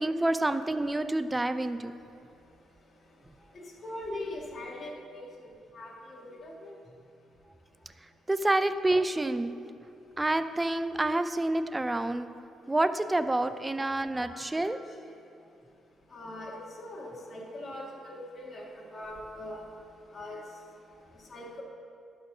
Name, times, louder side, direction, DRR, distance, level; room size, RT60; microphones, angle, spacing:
voice 1, 0.0-1.9 8.3-9.6 10.2-12.3 12.7-14.8, right 2 dB, 15° right, 11 dB, 0.4 m, -28 dB
voice 2, 3.8-6.5 14.3-14.5 16.1-19.6 20.1-20.4 21.3-21.6, left 1 dB, 40° left, -3 dB, 2.0 m, -41 dB
11.0 x 4.4 x 6.1 m, 2.6 s
cardioid pair, 90°, 0 cm